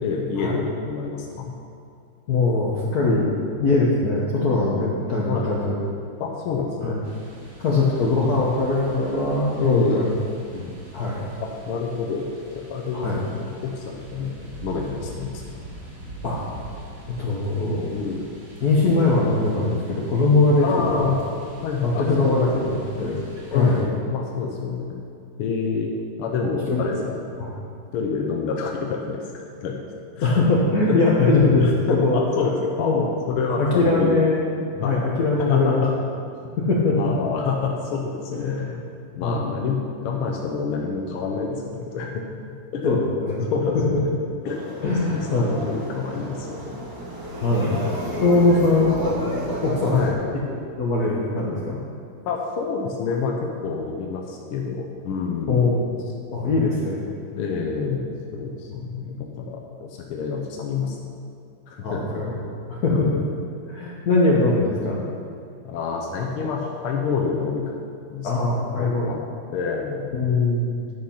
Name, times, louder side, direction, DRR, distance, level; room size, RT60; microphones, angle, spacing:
voice 1, 0.0-1.5 3.1-3.3 5.3-5.5 6.2-7.0 7.7-8.1 9.6-10.1 11.4-12.3 12.5-13.1 13.4-14.3 14.6-15.4 17.9-18.3 20.6-21.2 21.6-22.7 23.5-25.0 25.4-25.9 26.2-26.9 27.9-29.8 30.1-30.4 30.9-31.0 31.6-32.9 33.3-34.1 34.8-35.1 35.5-35.9 36.9-38.7 39.2-42.2 42.7-43.0 43.4-44.1 44.4-44.7 45.1-46.8 48.0-48.8 49.8-50.2 52.3-55.7 57.3-61.0 61.7-62.0 62.9-63.3 65.6-67.8 68.1-70.1, left 5 dB, 85° left, 0 dB, 1.7 m, -27 dB
voice 2, 2.3-3.3 3.6-5.7 6.8-7.0 7.6-10.1 10.5-11.3 12.9-13.2 16.2-16.4 17.1-17.9 18.6-21.0 21.8-23.2 23.5-23.8 26.7-27.0 27.4-27.5 30.2-31.7 32.0-32.2 32.8-33.1 33.6-35.8 36.6-37.3 38.3-38.8 39.2-39.4 42.8-43.4 43.9-44.0 44.8-45.6 47.4-47.8 48.2-49.4 49.6-50.1 50.5-51.8 55.5-55.9 56.3-57.0 61.8-62.4 62.7-63.2 63.7-65.1 68.2-69.1 70.1-70.8, left 2 dB, 50° left, -5 dB, 1.4 m, -21 dB
sound 1, 7.0-23.8, right 2 dB, 65° right, 3.0 m, -43 dB
sound 2, 44.4-50.1, right 1 dB, 10° right, 1.5 m, -32 dB
10.0 x 6.5 x 5.6 m, 2.4 s
omnidirectional pair, 2.3 m